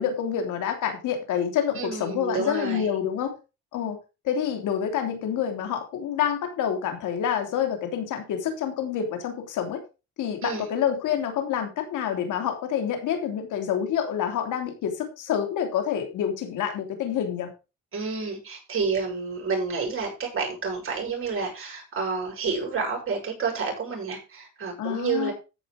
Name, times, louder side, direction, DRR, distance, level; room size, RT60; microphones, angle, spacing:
voice 1, 0.0-3.3 3.7-4.0 4.2-9.8 10.2-17.5 24.8-25.3, left 9 dB, 85° left, 5 dB, 3.2 m, -27 dB
voice 2, 1.8-3.0 10.4-10.7 17.9-25.3, right 5 dB, 45° right, 1 dB, 7.6 m, -29 dB
14.0 x 5.4 x 5.2 m, 0.30 s
cardioid pair, 90°, 30 cm